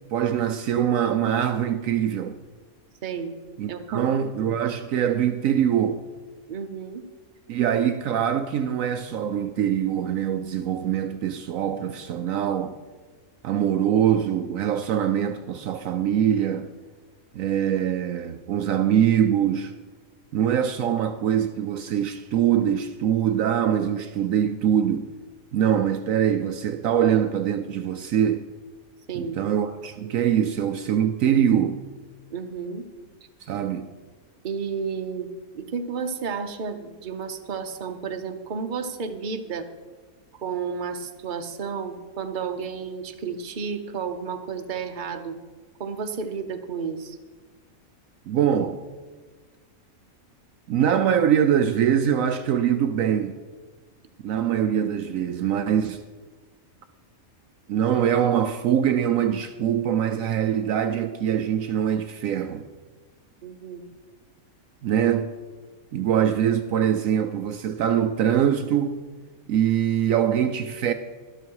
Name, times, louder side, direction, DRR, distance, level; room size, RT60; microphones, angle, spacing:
voice 1, 0.1-2.4 3.6-6.0 7.5-12.8 13.4-16.7 17.3-19.7 20.3-25.1 25.5-28.4 29.2-31.8 33.5-33.9 48.3-48.8 50.7-53.4 54.2-56.0 57.7-62.6 64.8-65.3 65.9-69.0 69.5-70.9, right 9 dB, 70° right, 1.0 m, -23 dB
voice 2, 3.0-3.3 3.7-4.1 4.4-4.5 6.5-7.0 29.1-29.4 32.3-32.9 34.4-35.3 35.5-39.7 40.3-45.3 45.8-47.2 63.4-63.8, right 6 dB, 40° right, 0.9 m, -32 dB
12.5 x 12.0 x 4.7 m
omnidirectional pair, 1.5 m